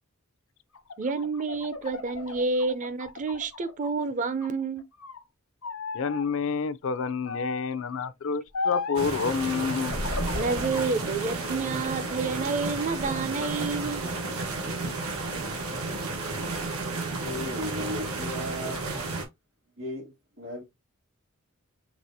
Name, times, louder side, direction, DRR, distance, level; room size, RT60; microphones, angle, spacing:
sound 1, 0.7-4.0 4.3-5.2 5.6-6.3 7.3-7.8 8.5-9.1 9.8-10.9 11.4-12.3 12.8-13.5, left 3 dB, 80° left, 1.1 m, -35 dB
voice 1, 1.0-4.8 10.3-14.0, right 4 dB, 35° right, 0.5 m, -29 dB
voice 2, 5.9-9.9, left 5 dB, 65° left, 0.4 m, -29 dB
sound 2, 8.9-19.2, right 3 dB, 90° right, 1.4 m, -32 dB
voice 3, 17.2-18.8 19.8-20.6, left 1 dB, 65° right, 2.0 m, -36 dB
6.0 x 3.3 x 2.7 m
head